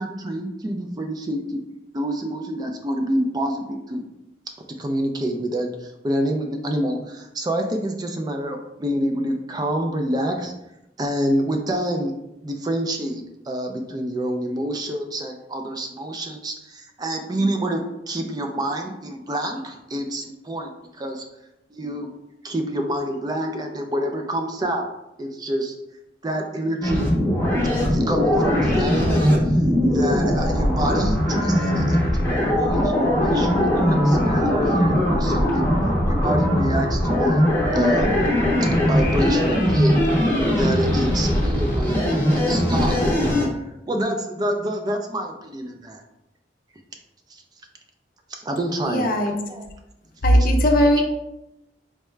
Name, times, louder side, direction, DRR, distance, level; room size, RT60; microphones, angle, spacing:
voice 1, 0.0-4.0 4.8-10.5 11.0-12.1 12.4-20.7 21.0-21.2 21.7-22.1 22.4-24.8 25.2-25.7 26.2-27.1 27.7-29.6 29.9-35.7 36.1-37.4 37.7-38.2 38.8-40.3 40.6-42.0 42.3-43.0 43.9-46.0 47.3-47.4 48.3-49.1 49.5-49.6, right 1 dB, 25° right, 3 dB, 0.3 m, -27 dB
sound 1, 26.8-43.5, equal, 10° left, 0.7 m, -20 dB
voice 2, 48.9-49.4 50.2-51.0, equal, 50° left, 2 dB, 0.5 m, -18 dB
4.6 x 2.1 x 3.2 m, 0.89 s
head